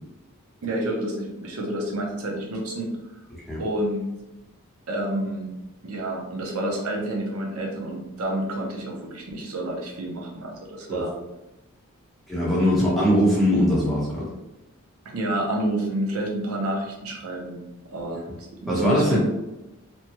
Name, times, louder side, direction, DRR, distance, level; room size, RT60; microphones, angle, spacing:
voice 1, 0.6-3.0 3.6-4.0 4.9-5.5 5.8-11.1 15.1-17.6 17.9-19.2, right 1 dB, 90° right, 0 dB, 0.6 m, -29 dB
voice 2, 12.3-14.3 18.1-18.2 18.7-19.2, equal, ahead, -8 dB, 0.9 m, -21 dB
2.9 x 2.2 x 2.8 m, 0.99 s
head